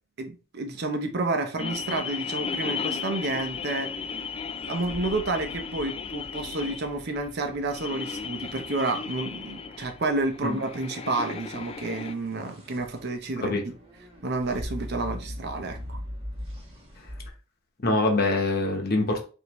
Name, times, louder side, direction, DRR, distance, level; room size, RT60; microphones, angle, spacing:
voice 1, 0.2-3.9 4.7-13.6 14.2-16.0, right 2 dB, 50° right, 0.7 m, -30 dB
sound 1, 1.6-12.1, left 5 dB, 30° left, 0.3 m, -35 dB
sound 2, 4.6-8.7 12.0-17.3, equal, 30° right, 1.3 m, -41 dB
voice 2, 17.8-19.3, left 2 dB, 50° left, 1.0 m, -24 dB
4.9 x 2.7 x 3.0 m
head